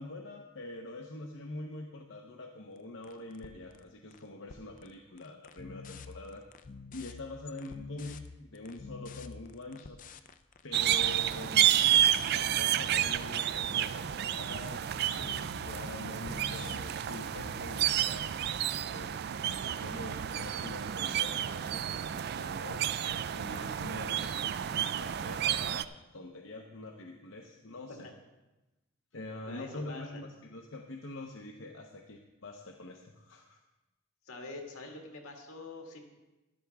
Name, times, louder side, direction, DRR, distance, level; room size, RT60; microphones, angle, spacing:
voice 1, 0.0-6.4 6.9-10.0 10.6-18.4 18.9-19.2 19.5-24.2 24.7-28.1 29.1-33.6, left 2 dB, 60° left, 2 dB, 0.8 m, -45 dB
sound 1, 2.8-2.9 3.0-4.2 4.5-4.9 5.2-18.0, left 5 dB, 35° left, 0.4 m, -48 dB
sound 2, 10.7-25.8, right 10 dB, 50° right, 0.3 m, -30 dB
voice 2, 29.4-30.2 34.3-36.0, left 2 dB, 80° left, 1 dB, 2.0 m, -45 dB
12.5 x 11.0 x 3.5 m, 1.0 s
head